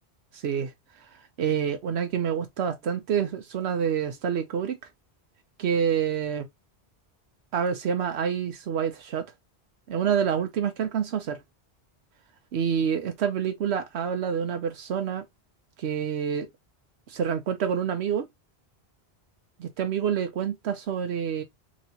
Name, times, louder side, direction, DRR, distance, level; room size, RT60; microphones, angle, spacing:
voice 1, 0.3-0.7 1.4-4.8 5.6-6.5 7.5-9.3 9.9-11.4 12.5-15.2 15.8-16.5 17.1-18.3 19.6-21.4, right 8 dB, 80° right, 0.9 m, -27 dB
3.1 x 2.9 x 2.7 m
omnidirectional pair, 1.1 m